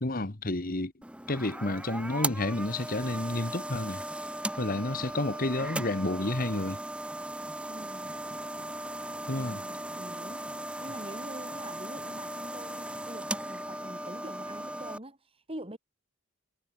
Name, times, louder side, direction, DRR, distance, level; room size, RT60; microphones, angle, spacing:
voice 1, 0.0-0.9 1.3-4.0 4.6-6.8 9.3-9.6, left 2 dB, 45° left, 1.5 m, -30 dB
sound 1, 1.0-15.0, right 1 dB, 5° right, 6.7 m, -37 dB
voice 2, 7.7-8.2 9.4-10.4 10.8-15.8, right 1 dB, 25° right, 7.1 m, -45 dB
head